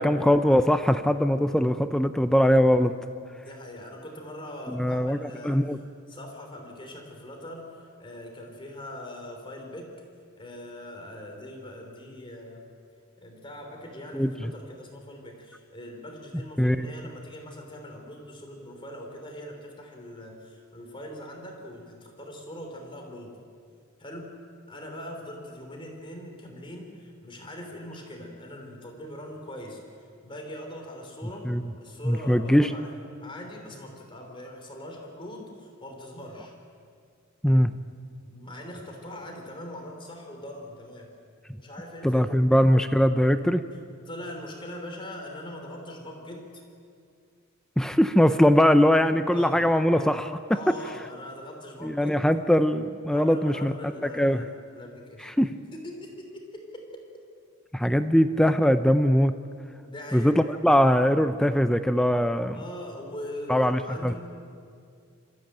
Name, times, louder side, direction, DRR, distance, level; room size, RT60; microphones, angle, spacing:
voice 1, 0.0-2.9 4.7-5.8 14.1-14.3 16.6-16.9 31.5-31.6 32.1-32.7 37.4-37.7 42.0-43.6 47.8-50.4 50.7-50.8 51.8-53.7 54.0-54.4 55.2-55.5 57.7-59.3 60.1-60.3 60.6-62.6 63.5-64.1, equal, 5° left, 9 dB, 0.5 m, -21 dB
voice 2, 3.4-5.6 6.1-9.9 10.4-12.6 13.2-23.4 24.0-24.3 24.7-29.8 30.2-31.5 31.8-36.5 38.3-41.1 41.5-42.3 44.1-46.6 49.3-49.7 50.5-52.2 53.1-55.3 55.7-57.1 59.8-60.4 62.5-64.2, left 1 dB, 25° left, 1 dB, 3.5 m, -41 dB
26.0 x 14.5 x 9.0 m, 2.3 s
head